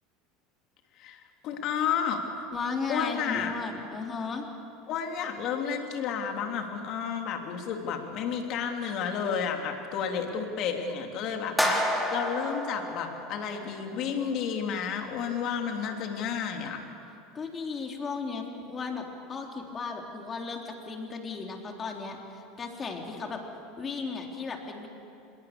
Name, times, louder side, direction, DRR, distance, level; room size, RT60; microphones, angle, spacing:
voice 1, 1.0-2.5 2.9-3.5 4.9-16.8, left 7 dB, 50° left, 3 dB, 3.2 m, -31 dB
voice 2, 2.5-4.4 17.3-22.2 22.6-23.4 23.8-24.9, left 4 dB, 30° left, 2 dB, 3.9 m, -35 dB
sound 1, 11.6-13.8, equal, 5° left, 4.8 m, -30 dB
26.0 x 22.0 x 7.0 m, 2.8 s
hypercardioid pair, 80°, 0 cm